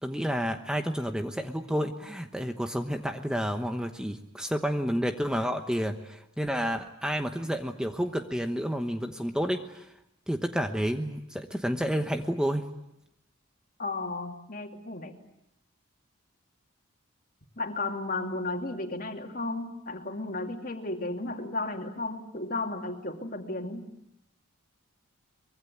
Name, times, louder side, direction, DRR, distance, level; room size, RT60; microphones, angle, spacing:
voice 1, 0.0-9.9 10.3-12.6, equal, 5° right, 6 dB, 1.1 m, -30 dB
voice 2, 13.8-15.2 17.6-23.9, left 2 dB, 40° left, 4 dB, 2.8 m, -34 dB
24.5 x 23.0 x 9.5 m, 0.83 s
head